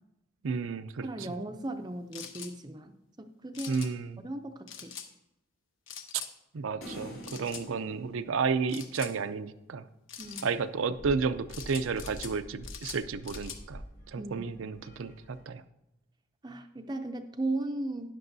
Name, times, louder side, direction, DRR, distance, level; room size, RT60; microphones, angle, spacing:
voice 1, 0.4-1.1 3.7-4.2 6.5-9.8 10.4-13.8 14.1-15.1 15.5-15.6, right 5 dB, 75° right, 10 dB, 0.5 m, -32 dB
voice 2, 1.0-3.9 4.2-4.9 10.2-10.5 14.2-14.6 16.4-18.1, right 2 dB, 20° right, 7 dB, 0.5 m, -37 dB
sound 1, 2.1-2.5 3.5-3.9 4.7-5.1 5.9-6.3 7.2-7.6 8.7-9.1 10.1-10.5 11.5-12.3 12.6-13.6, left 8 dB, 70° left, 1.1 m, -43 dB
sound 2, 6.8-9.2, equal, 85° left, 3.2 m, -46 dB
sound 3, 10.2-15.4, equal, 40° left, 1.8 m, -48 dB
12.5 x 9.8 x 2.7 m, 0.91 s
head